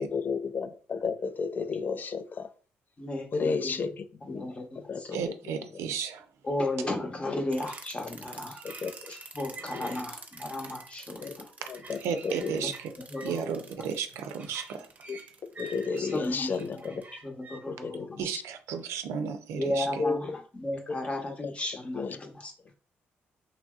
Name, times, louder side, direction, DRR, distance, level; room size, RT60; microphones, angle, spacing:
voice 1, 0.0-2.5 3.3-4.4 4.8-5.2 5.7-5.8 7.2-7.4 8.6-9.1 9.7-10.0 11.2-11.3 11.7-12.7 13.4-13.5 15.1-15.2 15.6-17.0 17.5-18.2 20.0-20.4 21.4-21.5 21.9-22.2, left 5 dB, 40° left, 11 dB, 0.3 m, -33 dB
voice 2, 3.0-3.7 4.3-5.2 6.4-8.6 9.3-11.5 12.6-12.7 13.1-13.4 13.8-13.9 16.0-16.5 16.9-17.0 17.2-18.1 19.6-22.5, left 1 dB, 25° left, 2 dB, 0.8 m, -34 dB
voice 3, 5.1-6.2 12.0-12.9 13.2-14.9 18.2-19.9, right 7 dB, 85° right, 8 dB, 0.4 m, -33 dB
sound 1, 7.5-17.6, right 3 dB, 35° right, 0.6 m, -46 dB
3.0 x 2.6 x 2.3 m, 0.39 s
cardioid pair, 75°, 5 cm